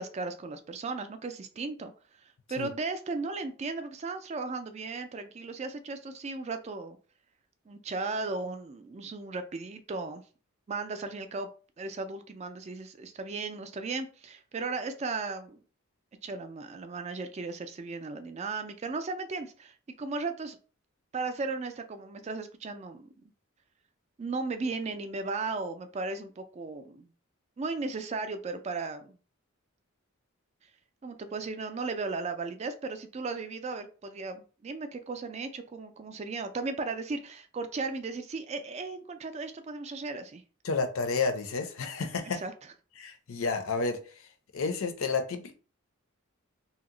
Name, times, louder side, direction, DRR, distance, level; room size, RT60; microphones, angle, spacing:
voice 1, 0.0-1.9 2.2-7.0 7.7-10.2 10.7-11.5 11.8-15.6 16.2-20.6 21.1-23.1 24.2-27.1 27.6-29.1 31.0-40.4 42.3-42.5, right 3 dB, 30° right, 9 dB, 0.3 m, -36 dB
voice 2, 40.6-42.4 43.0-44.0 44.5-45.5, left 4 dB, 70° left, 7 dB, 0.5 m, -30 dB
2.8 x 2.0 x 3.7 m, 0.37 s
head